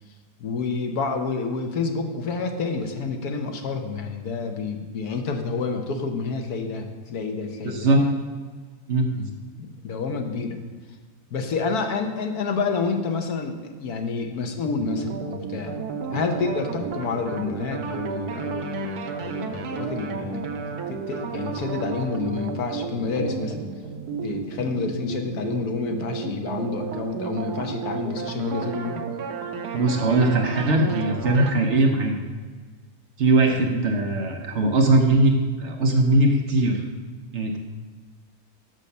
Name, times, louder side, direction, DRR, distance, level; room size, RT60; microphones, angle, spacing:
voice 1, 0.4-8.1 9.1-10.6 11.3-15.8 16.1-20.5 20.9-23.6 24.2-29.0 33.6-33.7, left 4 dB, 75° left, 4 dB, 1.4 m, -29 dB
voice 2, 7.6-8.0 8.9-9.1 29.7-32.2 33.2-35.3 35.6-36.8 37.3-37.6, right 2 dB, 55° right, 3 dB, 0.9 m, -20 dB
sound 1, 14.8-31.5, right 5 dB, 80° right, 1.2 m, -32 dB
6.3 x 5.7 x 6.7 m, 1.5 s
omnidirectional pair, 1.6 m